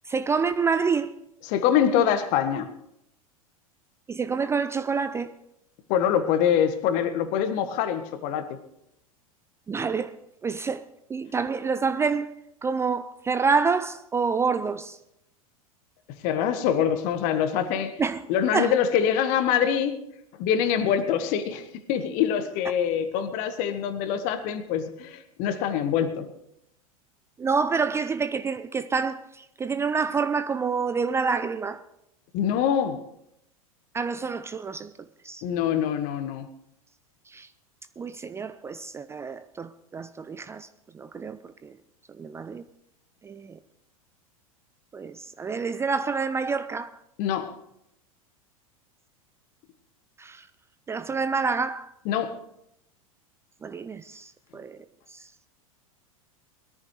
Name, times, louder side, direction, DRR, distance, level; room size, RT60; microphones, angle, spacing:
voice 1, 0.1-1.1 4.1-5.3 9.7-10.1 10.4-10.8 11.1-12.3 12.6-15.0 18.0-18.2 18.5-18.7 27.4-31.8 33.9-34.9 35.2-35.4 37.3-37.5 38.0-40.7 40.9-41.7 42.2-42.6 43.2-43.6 44.9-46.9 50.2-50.4 50.9-51.9 53.6-54.3 54.5-54.8, right 5 dB, 15° right, 0.5 m, -27 dB
voice 2, 1.4-2.7 5.9-8.5 16.2-17.9 18.3-20.0 20.4-26.3 32.3-33.0 35.4-36.5 47.2-47.6 52.0-52.4, left 8 dB, 45° left, 1.5 m, -24 dB
21.0 x 14.0 x 3.3 m
figure-of-eight pair, 90°, 18 cm